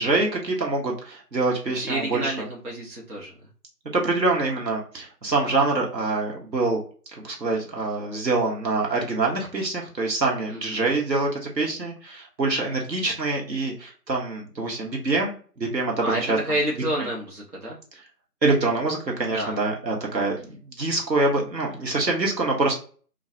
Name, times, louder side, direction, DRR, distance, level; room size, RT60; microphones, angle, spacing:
voice 1, 0.0-2.3 3.9-6.8 7.2-16.6 17.0-17.1 18.4-22.7, right 3 dB, 80° right, -1 dB, 1.2 m, -25 dB
voice 2, 1.7-3.3 10.5-10.8 16.0-17.8 19.3-19.5, right 1 dB, 60° right, -3 dB, 1.1 m, -29 dB
3.1 x 2.3 x 2.7 m, 0.40 s
figure-of-eight pair, 175°, 49 cm